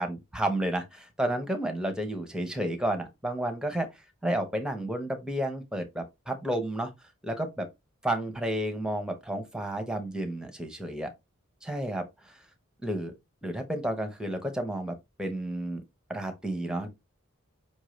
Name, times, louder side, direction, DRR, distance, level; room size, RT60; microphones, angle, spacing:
voice 1, 0.0-3.9 4.2-6.9 7.2-7.7 8.0-11.1 11.6-12.4 12.8-13.1 13.4-15.8 16.1-16.9, right 1 dB, 5° right, 0.8 m, -31 dB
5.5 x 2.6 x 3.2 m
head